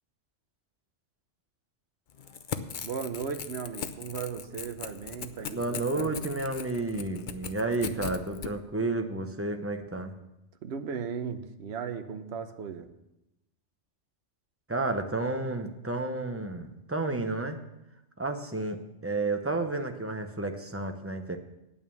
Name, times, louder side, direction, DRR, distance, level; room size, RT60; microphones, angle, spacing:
Crackle / Tearing, 2.1-8.5, left 7 dB, 50° left, 0.7 m, -39 dB
voice 1, 2.8-6.1 10.6-12.9, right 6 dB, 60° right, 8 dB, 1.1 m, -36 dB
voice 2, 5.5-10.1 14.7-17.6 18.2-21.4, right 2 dB, 15° right, 5 dB, 0.8 m, -31 dB
9.2 x 8.9 x 7.1 m, 0.91 s
omnidirectional pair, 1.3 m